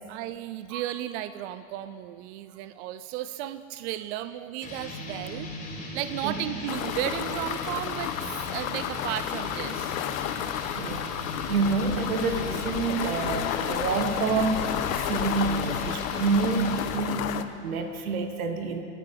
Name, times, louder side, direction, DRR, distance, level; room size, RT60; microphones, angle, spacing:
voice 1, 0.1-5.5 5.9-10.0, right 13 dB, 55° right, 13 dB, 0.6 m, -34 dB
sound 1, 4.6-17.1, left 2 dB, 20° left, 3.6 m, -38 dB
sound 2, 6.7-17.4, left 11 dB, 65° left, 0.9 m, -32 dB
voice 2, 10.7-18.8, right 4 dB, 75° right, 7 dB, 1.5 m, -28 dB
24.0 x 9.3 x 5.4 m, 2.5 s
hypercardioid pair, 85°, 43 cm